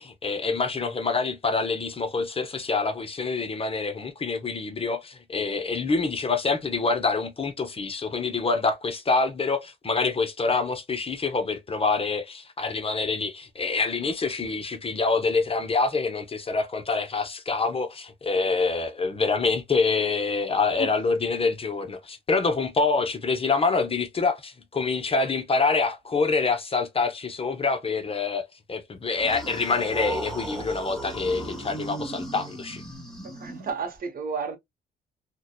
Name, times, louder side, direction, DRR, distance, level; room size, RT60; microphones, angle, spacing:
voice 1, 0.0-32.8, left 4 dB, 30° left, 0.6 m, -26 dB
sound 1, 29.2-34.0, right 2 dB, ahead, 0.9 m, -36 dB
voice 2, 33.2-34.6, right 5 dB, 45° right, 0.8 m, -32 dB
2.6 x 2.1 x 2.3 m
cardioid pair, 90°, 20 cm